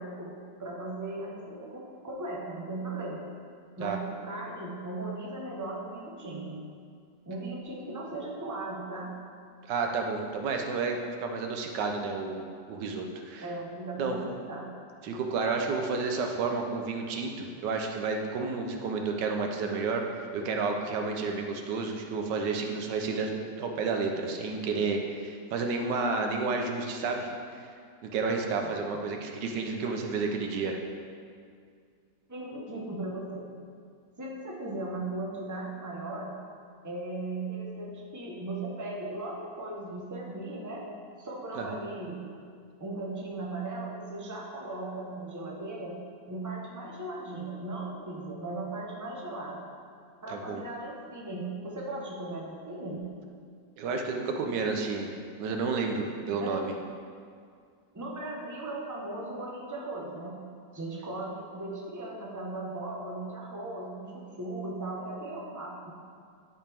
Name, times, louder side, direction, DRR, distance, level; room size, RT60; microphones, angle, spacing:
voice 1, 0.0-3.3 3.8-6.6 7.3-9.2 13.4-14.7 28.6-28.8 32.3-33.5 34.2-36.3 36.8-40.9 41.2-42.3 42.8-46.0 46.3-49.7 50.2-53.0 56.2-56.6 57.9-60.5 60.7-65.9, right 2 dB, 15° right, -2 dB, 0.9 m, -37 dB
voice 2, 9.7-13.5 14.0-14.2 15.0-20.0 20.3-23.3 23.6-27.7 28.0-30.8 41.6-41.7 50.3-50.6 53.8-55.1 55.4-56.7, right 4 dB, 90° right, 3 dB, 1.4 m, -31 dB
12.0 x 5.3 x 3.5 m, 2.2 s
omnidirectional pair, 1.8 m